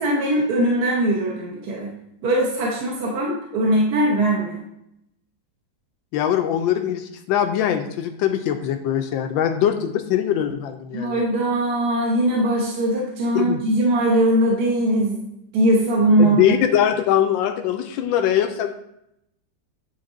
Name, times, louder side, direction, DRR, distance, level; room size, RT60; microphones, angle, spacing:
voice 1, 0.0-1.9 2.2-4.6 10.9-16.5, right 1 dB, 60° right, -2 dB, 1.5 m, -20 dB
voice 2, 6.1-11.2 13.3-13.6 16.2-18.7, left 10 dB, 90° left, 6 dB, 1.3 m, -22 dB
9.8 x 3.9 x 3.8 m, 0.79 s
omnidirectional pair, 2.0 m